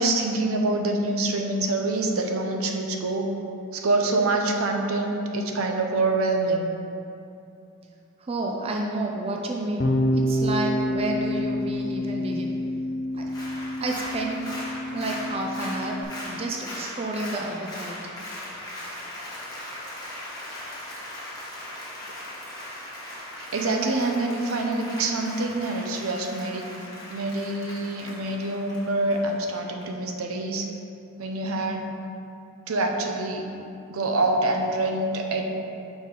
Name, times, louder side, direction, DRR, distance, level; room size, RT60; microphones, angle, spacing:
voice 1, 0.0-3.3 3.7-6.7 23.5-26.6 27.1-30.7 31.2-31.9 32.7-33.5 33.9-35.4, right 2 dB, 85° right, 3 dB, 0.6 m, -26 dB
voice 2, 8.2-12.6 13.1-13.3 13.8-14.5 14.9-18.0, right 2 dB, 25° right, 0 dB, 0.3 m, -30 dB
Bass guitar, 9.8-16.0, left 1 dB, 40° left, 0.5 m, -28 dB
Applause, 13.2-29.8 30.2-30.3, left 1 dB, 15° left, 1.1 m, -39 dB
4.8 x 4.1 x 5.4 m, 2.7 s
head